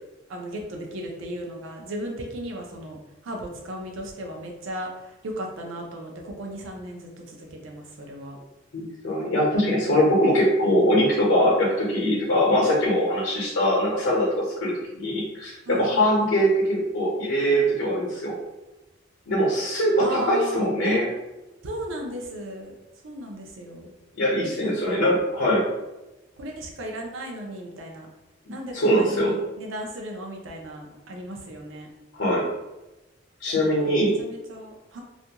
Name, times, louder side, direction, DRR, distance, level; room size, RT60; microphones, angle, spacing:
voice 1, 0.3-3.0 3.2-8.4 15.7-16.4 20.0-20.7 21.6-22.7 23.0-23.9 24.6-25.0 26.4-28.1 28.5-31.9 33.8-35.0, right 1 dB, 80° right, 1 dB, 0.5 m, -36 dB
voice 2, 8.7-18.3 19.3-21.1 24.1-25.6 28.7-29.3 32.1-32.4 33.4-34.1, equal, 80° left, -4 dB, 0.7 m, -22 dB
2.4 x 2.2 x 2.8 m, 1.0 s
head